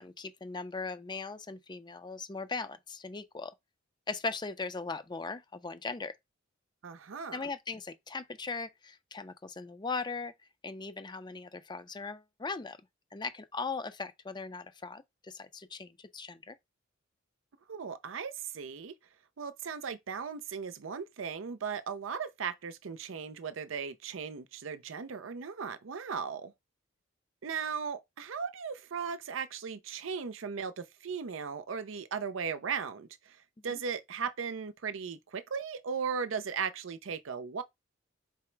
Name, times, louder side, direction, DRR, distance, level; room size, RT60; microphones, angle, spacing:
voice 1, 0.0-3.5 4.1-6.1 7.3-10.3 10.6-12.8 13.1-16.6 33.7-33.8, left 4 dB, 25° left, 0.5 m, -39 dB
voice 2, 6.8-7.4 17.7-18.9 19.4-26.5 27.4-33.4 33.6-37.6, right 6 dB, 85° right, 0.5 m, -37 dB
4.7 x 2.1 x 4.4 m
head